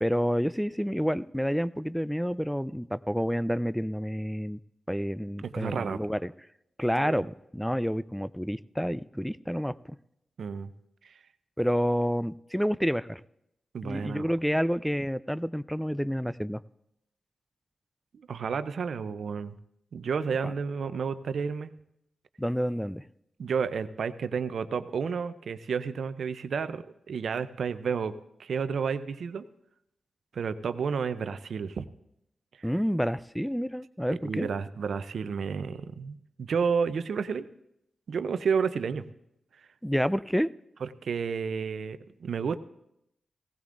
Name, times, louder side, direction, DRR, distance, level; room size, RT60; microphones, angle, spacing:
voice 1, 0.0-4.6 4.9-6.3 6.8-9.7 11.6-13.2 13.8-16.6 22.4-23.1 32.6-34.5 39.8-40.5, equal, ahead, 15 dB, 0.4 m, -29 dB
voice 2, 5.4-6.0 7.0-7.2 10.4-10.7 11.0-11.1 13.7-14.3 18.3-19.6 19.9-21.7 23.4-28.1 28.4-29.4 30.3-31.9 32.6-32.7 34.1-37.5 38.1-39.0 40.8-42.6, right 6 dB, 75° right, 12 dB, 0.6 m, -31 dB
17.0 x 15.5 x 2.6 m, 0.81 s
cardioid pair, 45°, 0 cm